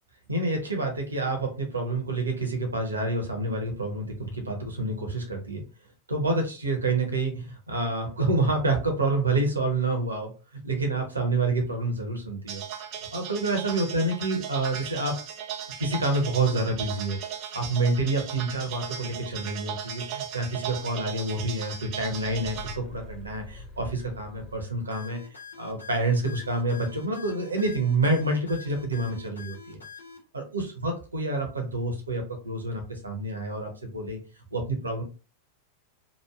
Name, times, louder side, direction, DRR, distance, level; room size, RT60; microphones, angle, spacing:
voice 1, 0.3-5.6 6.1-12.6 13.1-15.1 15.8-17.2 17.5-25.2 25.6-29.8 30.3-34.2 34.5-35.0, right 2 dB, 75° right, 3 dB, 0.8 m, -28 dB
sound 1, 12.5-22.8, right 8 dB, 40° right, 0.5 m, -37 dB
sound 2, 22.1-25.1, left 4 dB, 25° left, 0.9 m, -45 dB
sound 3, 24.9-30.2, left 5 dB, 75° left, 0.5 m, -45 dB
3.0 x 2.3 x 2.3 m, 0.34 s
figure-of-eight pair, 90°, 0 cm